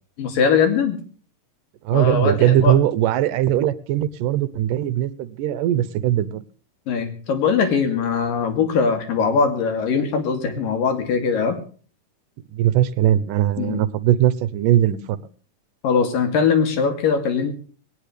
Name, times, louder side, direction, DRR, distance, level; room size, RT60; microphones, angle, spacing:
voice 1, 0.2-1.0 1.9-2.8 6.9-11.6 13.6-13.8 15.8-17.5, left 5 dB, 85° left, 7 dB, 4.4 m, -21 dB
voice 2, 1.9-6.4 12.5-15.2, right 12 dB, 75° right, 17 dB, 2.5 m, -20 dB
19.0 x 18.5 x 3.3 m, 0.40 s
omnidirectional pair, 3.9 m